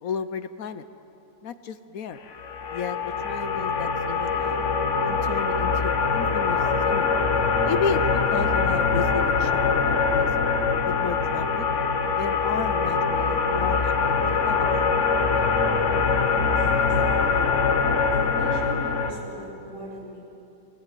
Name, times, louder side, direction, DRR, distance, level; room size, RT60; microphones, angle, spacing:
voice 1, 0.0-0.8 1.4-2.2 2.7-4.6 5.0-7.1 7.6-10.3 10.8-11.7 12.2-14.9, left 6 dB, 65° left, 11 dB, 1.1 m, -33 dB
sound 1, 2.3-19.1, left 5 dB, 50° left, 1.6 m, -23 dB
voice 2, 16.1-17.5 18.1-20.2, right 1 dB, 70° right, -5 dB, 6.7 m, -40 dB
24.5 x 17.0 x 9.1 m, 3.0 s
omnidirectional pair, 1.7 m